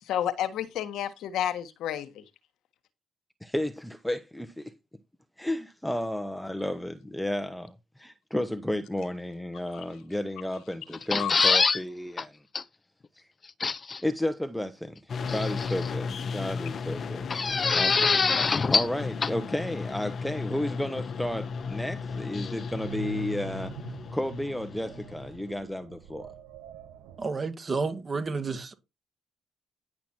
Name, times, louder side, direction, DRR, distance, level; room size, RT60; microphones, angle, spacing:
voice 1, 0.0-2.2 9.7-9.8 11.2-11.5, left 11 dB, 75° left, 1.3 m, -31 dB
voice 2, 3.4-4.7 5.4-12.4 13.1-13.2 14.0-17.3 17.7-18.1 18.4-26.3, left 1 dB, 5° left, 0.9 m, -33 dB
sound 1, 10.9-11.8 12.2-12.3 12.6-12.7 13.6-14.0 15.3-15.9 17.3-19.0 19.2-19.3, left 4 dB, 35° left, 0.6 m, -24 dB
sound 2, 15.1-25.5, left 5 dB, 55° left, 1.0 m, -35 dB
sound 3, 21.3-27.3, right 7 dB, 85° right, 0.9 m, -45 dB
voice 3, 27.2-28.7, right 4 dB, 40° right, 2.2 m, -30 dB
10.5 x 6.0 x 4.4 m
supercardioid pair, 65°, 0 cm